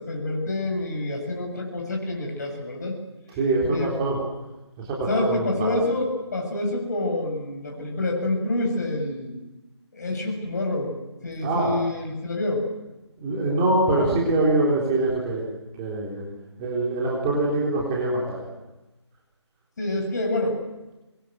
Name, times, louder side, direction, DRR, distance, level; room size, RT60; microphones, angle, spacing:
voice 1, 0.0-3.0 3.7-3.9 5.1-9.4 9.9-10.9 11.2-12.7 19.8-20.6, left 2 dB, 35° left, 1 dB, 8.0 m, -27 dB
voice 2, 3.3-4.2 4.8-5.7 11.4-11.8 13.2-15.5 15.8-16.3 16.6-18.4, right 2 dB, 15° right, -4 dB, 3.7 m, -24 dB
25.5 x 22.0 x 7.8 m, 1.0 s
figure-of-eight pair, 155°, 15 cm